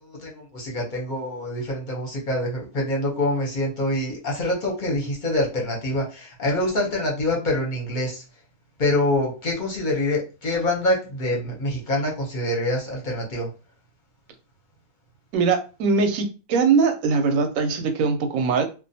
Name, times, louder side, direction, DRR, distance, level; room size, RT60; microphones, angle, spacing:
voice 1, 0.0-8.2 8.8-13.5, left 1 dB, 45° left, -2 dB, 0.7 m, -25 dB
voice 2, 15.3-18.6, right 5 dB, 70° right, 5 dB, 0.9 m, -21 dB
2.4 x 2.2 x 2.6 m, 0.33 s
omnidirectional pair, 1.6 m